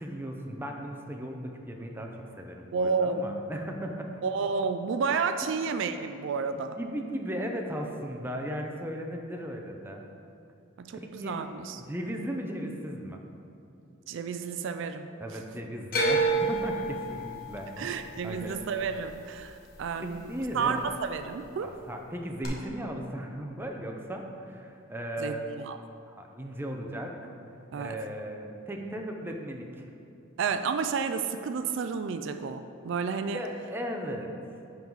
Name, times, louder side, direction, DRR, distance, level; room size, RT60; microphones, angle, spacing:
voice 1, 0.0-4.1 6.8-10.0 10.9-11.4 11.8-13.2 15.2-18.0 18.2-18.6 20.0-20.8 21.6-25.5 26.1-27.1 27.8-29.9 33.3-34.3, equal, 10° right, 2 dB, 0.6 m, -36 dB
voice 2, 2.7-3.2 4.2-6.8 10.8-11.8 14.1-15.1 17.8-21.7 25.2-25.8 27.7-28.0 30.4-33.4, right 5 dB, 65° right, 8 dB, 0.3 m, -31 dB
sound 1, 15.9-20.1 20.4-21.1 22.4-22.5, right 3 dB, 45° left, 1.2 m, -30 dB
10.5 x 3.9 x 4.6 m, 2.7 s
head